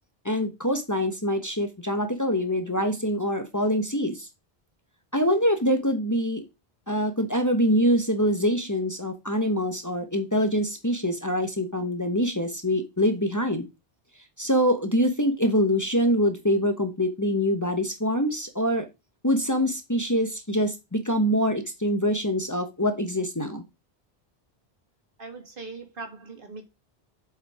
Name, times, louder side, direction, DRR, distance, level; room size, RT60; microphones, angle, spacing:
voice 1, 0.2-4.3 5.1-6.4 6.9-13.7 14.4-18.9 19.2-23.6, equal, 20° left, 1.2 m, -24 dB
voice 2, 25.2-26.6, right 3 dB, 60° right, 1.8 m, -40 dB
7.3 x 5.5 x 4.9 m
omnidirectional pair, 1.0 m